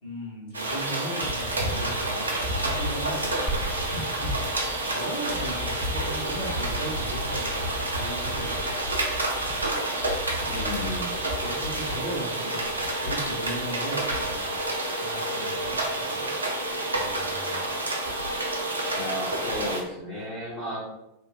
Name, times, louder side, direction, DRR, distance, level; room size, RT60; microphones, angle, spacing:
voice 1, 0.0-3.1 3.4-8.7 11.3-14.6 15.0-16.1 16.9-17.6, right 1 dB, 55° left, -8 dB, 1.4 m, -38 dB
sound 1, 0.5-19.8, right 1 dB, 80° right, 0.5 m, -29 dB
Glass, 3.5-11.4, right 1 dB, 5° left, 0.3 m, -40 dB
voice 2, 10.4-11.1 19.0-20.8, left 1 dB, 30° left, -7 dB, 0.9 m, -33 dB
3.0 x 2.2 x 2.3 m, 0.88 s
figure-of-eight pair, 90°, 0 cm